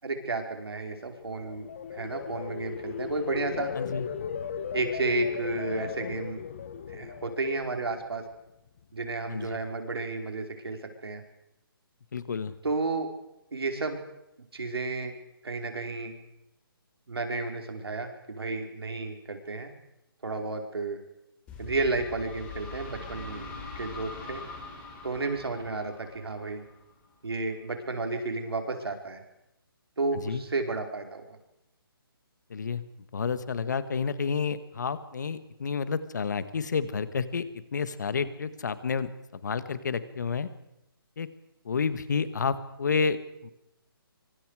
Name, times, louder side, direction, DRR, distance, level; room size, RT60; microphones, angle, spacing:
voice 1, 0.0-3.7 4.7-6.4 6.9-8.2 8.9-11.2 12.6-13.1 13.5-14.0 14.5-15.1 15.4-16.1 17.1-19.7 20.2-21.0 21.6-23.5 23.7-24.4 25.0-26.6 27.2-29.2 30.0-31.4, right 3 dB, 90° right, 4 dB, 4.9 m, -32 dB
sound 1, 1.1-8.3 8.7-9.0, left 7 dB, 35° left, 1.3 m, -37 dB
voice 2, 12.1-12.5 30.2-30.4 32.5-32.8 33.1-37.5 37.7-39.1 39.4-40.5 41.2-41.3 41.6-43.5, left 5 dB, 50° left, 14 dB, 1.6 m, -30 dB
sound 2, 21.5-27.1, left 3 dB, 10° left, 3.4 m, -43 dB
24.5 x 24.5 x 5.0 m, 0.88 s
hypercardioid pair, 170°, 12 cm